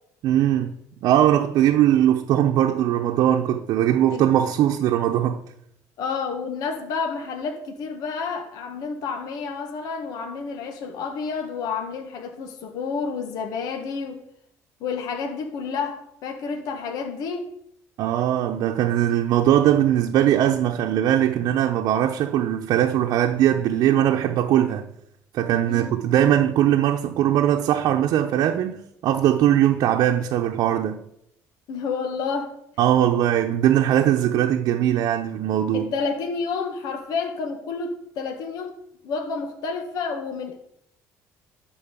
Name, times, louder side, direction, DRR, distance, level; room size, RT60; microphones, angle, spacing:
voice 1, 0.2-0.7 1.0-5.4 18.0-24.9 25.3-31.0 32.8-35.9, right 11 dB, 75° right, 0.9 m, -20 dB
voice 2, 6.0-14.2 14.8-17.5 25.7-25.9 31.7-32.6 35.7-38.7 39.0-40.6, left 5 dB, 75° left, 1.7 m, -30 dB
12.0 x 4.6 x 7.5 m
supercardioid pair, 90°, 7 cm